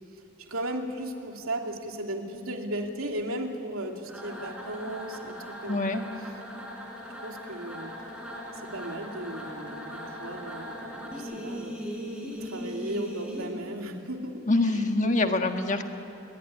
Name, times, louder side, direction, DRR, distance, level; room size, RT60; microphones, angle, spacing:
voice 1, 0.4-6.0 7.2-7.9 8.5-12.0 12.4-14.9 15.2-15.3, right 1 dB, 85° right, 3 dB, 2.7 m, -36 dB
sound 1, 4.0-13.5, equal, 5° right, 4.5 m, -39 dB
voice 2, 5.7-6.0 14.5-15.8, left 2 dB, 35° left, 6 dB, 1.5 m, -25 dB
27.5 x 22.0 x 9.9 m, 2.8 s
head